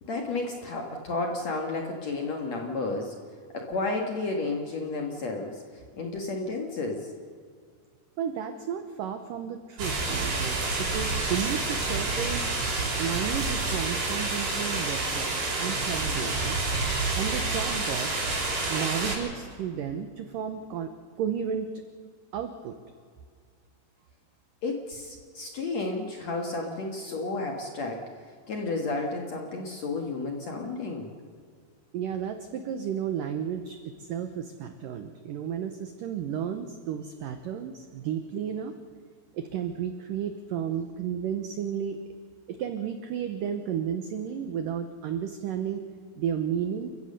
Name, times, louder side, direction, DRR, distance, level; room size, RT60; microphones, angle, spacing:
voice 1, 0.0-3.2 3.5-5.6 5.9-7.1 24.6-28.1 28.5-31.1, left 3 dB, 55° left, 2 dB, 2.0 m, -32 dB
voice 2, 8.2-12.4 13.0-16.6 17.1-18.1 18.7-21.7 22.3-22.8 31.9-38.7 39.3-42.0 42.5-45.8 46.2-46.9, right 8 dB, 85° right, 8 dB, 1.9 m, -33 dB
sound 1, 9.8-19.1, right 3 dB, 55° right, 7.0 m, -28 dB
28.5 x 15.5 x 6.7 m, 2.1 s
omnidirectional pair, 5.2 m